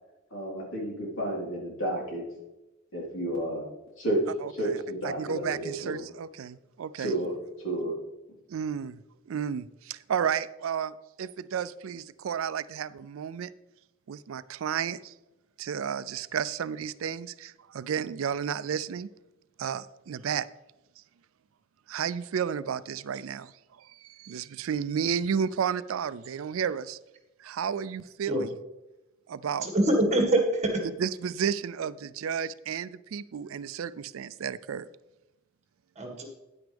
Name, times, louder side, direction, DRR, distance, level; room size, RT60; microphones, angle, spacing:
voice 1, 0.3-2.2 2.9-3.7 4.0-4.2 4.5-6.0 7.0-8.0, right 1 dB, 65° left, -4 dB, 3.9 m, -31 dB
voice 2, 4.4-4.8 5.0-7.2 8.5-9.0 9.3-13.5 14.1-15.1 15.6-19.1 19.6-20.5 21.9-23.5 23.8-27.0 27.4-28.5 29.3-29.7 31.0-34.8, right 7 dB, 75° right, 16 dB, 0.4 m, -32 dB
voice 3, 29.6-30.8 36.0-36.3, right 1 dB, 35° right, 2 dB, 1.8 m, -24 dB
10.0 x 9.4 x 3.4 m, 0.98 s
head